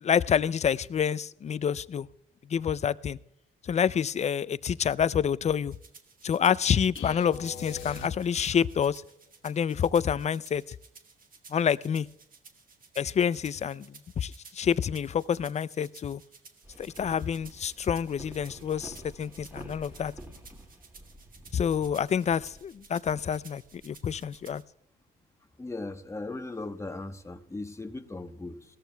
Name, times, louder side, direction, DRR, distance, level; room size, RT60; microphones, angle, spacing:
voice 1, 0.0-2.1 2.5-3.2 3.7-5.7 6.2-9.0 9.4-10.6 11.5-12.1 13.0-13.9 14.2-16.2 16.8-20.1 21.5-24.6, left 8 dB, 35° left, 0.4 m, -27 dB
sound 1, 5.7-24.6, right 4 dB, 45° right, 1.4 m, -55 dB
sound 2, 7.0-8.7, left 6 dB, 75° left, 1.2 m, -42 dB
sound 3, 16.6-24.6, right 1 dB, 10° right, 2.1 m, -49 dB
voice 2, 25.6-28.6, left 2 dB, 15° left, 0.9 m, -38 dB
18.0 x 14.0 x 2.2 m
cardioid pair, 90°, 20 cm